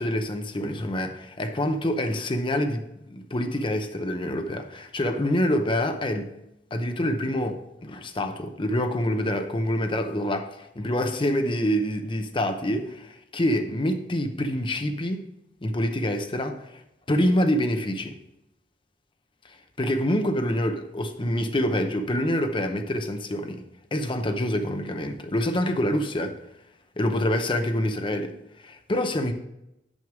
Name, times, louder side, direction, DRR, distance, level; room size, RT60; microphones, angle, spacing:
voice 1, 0.0-6.3 6.7-15.2 15.6-16.8 17.1-18.1 19.8-23.6 23.9-26.4 27.0-29.3, left 1 dB, 30° left, 0.7 m, -26 dB
6.2 x 5.2 x 5.9 m
head